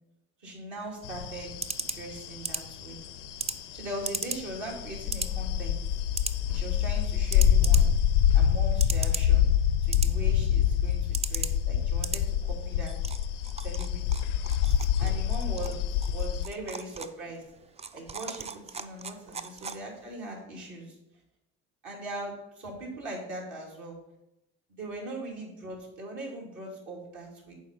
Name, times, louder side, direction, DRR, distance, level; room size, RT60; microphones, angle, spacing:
voice 1, 0.4-1.5 1.9-3.0 3.7-5.8 6.5-7.9 8.3-9.5 9.8-12.9 13.6-14.3 15.0-15.7 16.1-17.4 17.9-21.0 21.8-24.0 24.8-27.5, right 1 dB, 60° right, -3 dB, 2.9 m, -40 dB
sound 1, 0.8-20.1, right 5 dB, 20° right, 0.4 m, -39 dB
sound 2, 1.0-16.5, left 9 dB, 85° left, 0.6 m, -26 dB
7.2 x 4.7 x 5.3 m, 0.89 s
hypercardioid pair, 65°, 35 cm